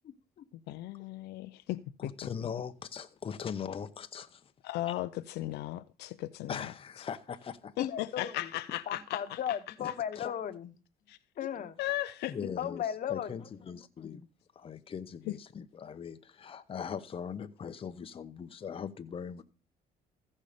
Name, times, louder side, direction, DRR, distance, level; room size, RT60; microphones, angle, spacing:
voice 1, 0.0-0.4 7.8-8.5 8.9-10.7 11.4-11.8 12.6-13.4, left 9 dB, 50° left, 1.1 m, -36 dB
voice 2, 0.7-2.1 4.6-6.6 7.8-9.2 11.1-11.2 11.8-12.4 15.3-15.4, left 16 dB, 80° left, 0.5 m, -36 dB
voice 3, 2.0-4.5 4.9-5.0 6.5-7.9 8.2-8.3 9.8-9.9 10.2-10.3 12.3-14.3 14.6-19.4, left 7 dB, 35° left, 0.8 m, -40 dB
15.0 x 5.4 x 5.1 m
cardioid pair, 110°, 17 cm